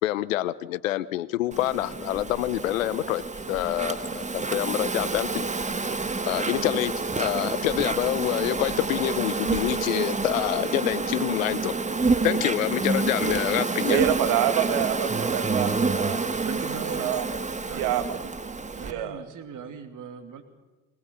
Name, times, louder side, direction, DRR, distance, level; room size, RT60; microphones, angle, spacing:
voice 1, 0.0-3.2 3.5-5.5 6.3-11.7 12.2-14.1, left 15 dB, 90° left, 17 dB, 0.8 m, -27 dB
Insect, 1.5-18.9, right 4 dB, 20° right, 1.6 m, -28 dB
voice 2, 13.9-16.2 17.0-17.3 17.7-18.2 18.8-19.2, right 11 dB, 75° right, 9 dB, 2.0 m, -26 dB
voice 3, 16.4-17.2 17.6-18.0 18.7-20.4, right 7 dB, 55° right, 7 dB, 2.9 m, -38 dB
21.0 x 20.0 x 7.0 m, 1.2 s
hypercardioid pair, 60°, 38 cm